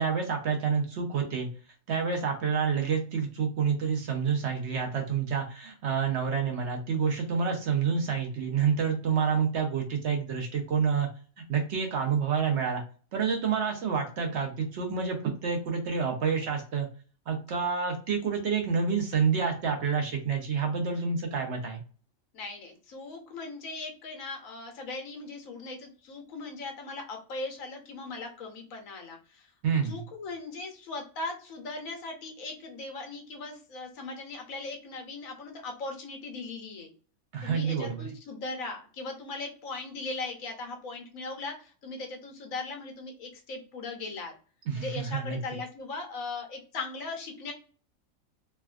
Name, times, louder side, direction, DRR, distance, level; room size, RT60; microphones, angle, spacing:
voice 1, 0.0-1.5 1.9-11.1 11.5-12.8 13.1-16.9 17.3-21.8 29.6-30.0 37.3-38.0 44.7-45.4, right 6 dB, 60° right, 2 dB, 0.8 m, -28 dB
voice 2, 22.3-29.5 29.8-36.9 37.4-44.3 44.8-47.5, left 3 dB, 75° left, 3 dB, 1.1 m, -39 dB
3.3 x 2.2 x 2.3 m, 0.38 s
omnidirectional pair, 1.5 m